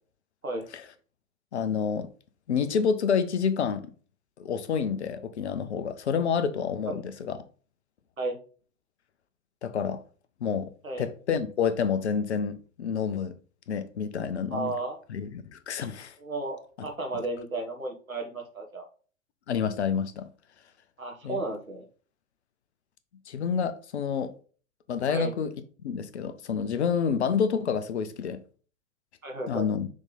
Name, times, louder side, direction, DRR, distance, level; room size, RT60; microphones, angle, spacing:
voice 1, 1.5-2.1 2.5-3.8 4.4-7.4 9.6-10.0 10.4-10.7 11.0-13.3 13.7-14.7 15.1-16.1 16.8-16.9 19.5-20.3 21.2-21.4 23.3-24.3 24.9-25.5 25.8-28.4 29.5-29.9, left 6 dB, 55° left, 0.9 m, -28 dB
voice 2, 14.5-15.0 16.2-18.9 21.0-21.9 25.1-25.3 29.2-29.7, right 2 dB, 85° right, 1.6 m, -33 dB
6.4 x 3.7 x 4.0 m
figure-of-eight pair, 105°, 40 cm